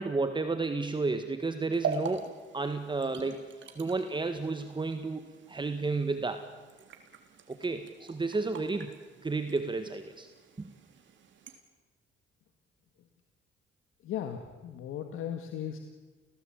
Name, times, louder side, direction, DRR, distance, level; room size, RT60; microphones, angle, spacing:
voice 1, 0.0-3.4 3.8-6.4 7.5-8.9 9.2-10.3 10.6-10.7, right 3 dB, 25° right, 8 dB, 1.7 m, -32 dB
sound 1, 1.7-11.6, right 5 dB, 65° right, 3.4 m, -43 dB
voice 2, 14.0-15.8, left 9 dB, 85° left, 6 dB, 1.9 m, -37 dB
28.5 x 18.0 x 8.9 m, 1.3 s
cardioid pair, 95°, 20 cm